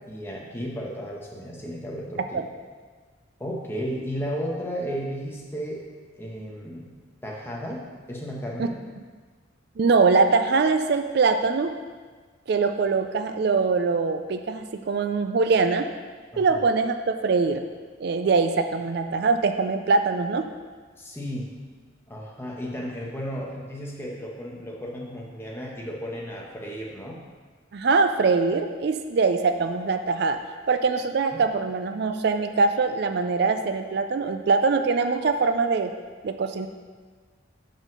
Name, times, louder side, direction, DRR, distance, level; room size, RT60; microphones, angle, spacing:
voice 1, 0.0-2.4 3.4-5.8 6.2-6.9 7.2-7.8 8.1-8.8 16.3-16.6 21.0-21.5 22.1-27.2, equal, 10° left, -3 dB, 1.0 m, -34 dB
voice 2, 9.8-11.7 12.5-15.9 16.4-17.6 18.0-20.5 27.7-30.4 30.7-35.9 36.2-36.7, right 4 dB, 55° right, 7 dB, 0.4 m, -23 dB
5.7 x 5.2 x 6.2 m, 1.5 s
head